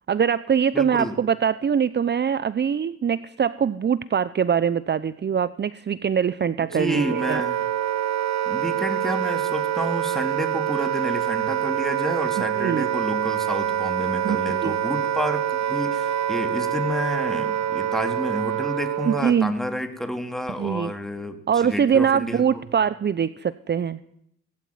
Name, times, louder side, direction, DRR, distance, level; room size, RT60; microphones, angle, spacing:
voice 1, 0.1-7.4 12.6-12.9 14.2-14.8 19.1-19.5 20.6-20.9 21.5-24.0, right 7 dB, 35° right, 16 dB, 0.8 m, -23 dB
voice 2, 0.7-1.2 6.6-7.6 8.4-22.6, equal, ahead, 7 dB, 3.4 m, -30 dB
Wind instrument woodwind instrument, 6.7-19.4, right 10 dB, 65° right, 1.2 m, -26 dB
19.5 x 16.0 x 9.6 m, 0.75 s
cardioid pair, 90°, 30 cm